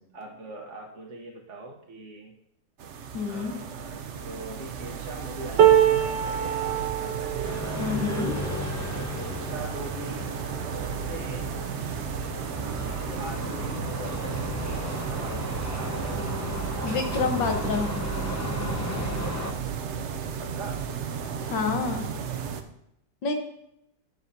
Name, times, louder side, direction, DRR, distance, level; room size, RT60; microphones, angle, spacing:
voice 1, 0.1-2.3 3.3-7.5 8.1-8.7 9.0-10.3 10.7-11.5 12.6-16.6 20.4-20.8, right 2 dB, 45° right, -1 dB, 1.3 m, -42 dB
sound 1, 2.8-22.6, right 7 dB, 65° right, 0.7 m, -34 dB
voice 2, 3.1-3.6 7.8-8.3 16.8-17.9 21.5-22.0 23.2-23.3, left 4 dB, 80° left, 4 dB, 1.9 m, -28 dB
sound 2, 5.6-11.7 12.3-12.5 12.8-13.6 14.5-14.6, right 10 dB, 80° right, 1.6 m, -26 dB
sound 3, 7.4-19.5, left 2 dB, 25° left, 0.3 m, -35 dB
12.5 x 8.1 x 2.7 m, 0.78 s
omnidirectional pair, 2.0 m